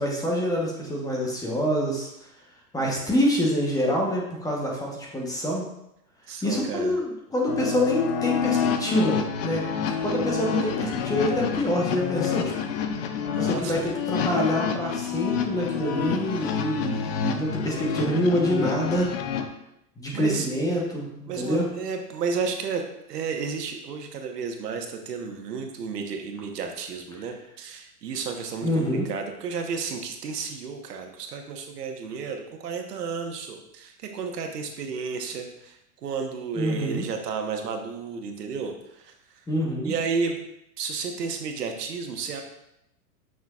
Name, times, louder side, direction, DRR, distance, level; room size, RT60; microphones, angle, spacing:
voice 1, 0.0-2.1 2.7-5.7 6.4-12.5 13.4-19.1 20.0-21.7 28.6-29.1 36.6-37.1 39.5-39.9, equal, 10° left, -2 dB, 1.0 m, -26 dB
voice 2, 6.3-7.0 13.2-13.9 20.1-20.5 21.3-39.1 39.8-40.4 40.8-42.4, right 5 dB, 90° right, 4 dB, 1.3 m, -32 dB
sound 1, 7.5-19.5, left 7 dB, 40° left, 0.6 m, -28 dB
8.4 x 6.1 x 2.4 m, 0.82 s
hypercardioid pair, 140°, 46 cm